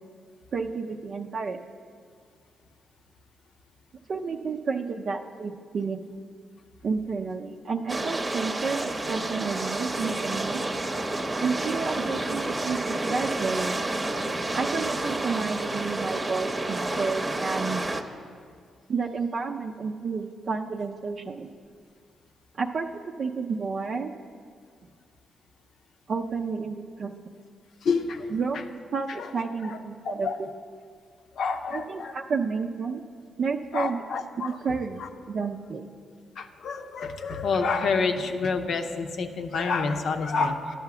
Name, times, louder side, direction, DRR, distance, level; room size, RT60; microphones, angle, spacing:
voice 1, 0.5-1.6 4.1-6.0 6.8-10.7 11.4-13.8 14.5-17.8 18.9-21.5 22.6-24.1 26.1-27.1 28.3-28.6 28.9-30.3 31.7-33.0 33.4-34.0 34.4-35.9, right 5 dB, 60° right, 2 dB, 0.5 m, -31 dB
sound 1, 7.9-18.0, right 2 dB, 30° right, 0.8 m, -30 dB
voice 2, 27.8-28.3 29.2-29.3 29.6-29.8 30.0-30.3 31.3-32.2 33.7-34.6 35.0-35.1 36.4-40.7, left 4 dB, 65° left, 6 dB, 0.7 m, -28 dB
11.5 x 5.6 x 5.9 m, 2.1 s
hypercardioid pair, 45°, 0 cm